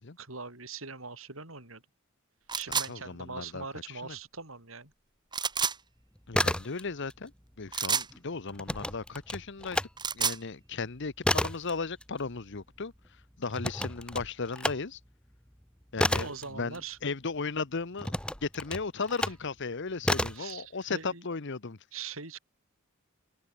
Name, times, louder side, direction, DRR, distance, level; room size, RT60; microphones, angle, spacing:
voice 1, 0.2-1.8 2.5-4.9 16.2-17.0 20.3-21.2 21.9-22.4, right 5 dB, 75° right, 7.9 m, -42 dB
sound 1, 2.5-2.9 5.3-5.8 7.7-8.1 9.8-10.4, right 6 dB, 20° right, 1.7 m, -29 dB
voice 2, 2.7-3.6 4.0-4.2 6.3-7.3 7.6-9.9 10.1-12.9 13.4-15.0 15.9-21.8, left 4 dB, 60° left, 1.0 m, -36 dB
sound 2, 6.2-7.2 7.4-9.9 10.3-17.4 18.0-19.5 20.0-20.5, left 1 dB, 5° left, 1.8 m, -32 dB
head